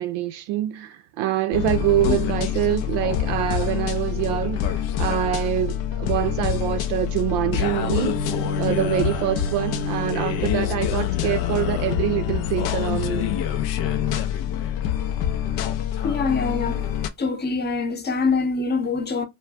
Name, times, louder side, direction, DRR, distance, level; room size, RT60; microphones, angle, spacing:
voice 1, 0.0-4.7 5.0-8.2 8.6-13.3, right 13 dB, 65° right, 0.5 m, -25 dB
sound 1, 1.5-17.1, left 9 dB, 75° left, 0.6 m, -25 dB
voice 2, 16.0-16.9 17.2-19.3, left 4 dB, 25° left, 0.7 m, -24 dB
2.4 x 2.2 x 3.3 m
hypercardioid pair, 70°, 43 cm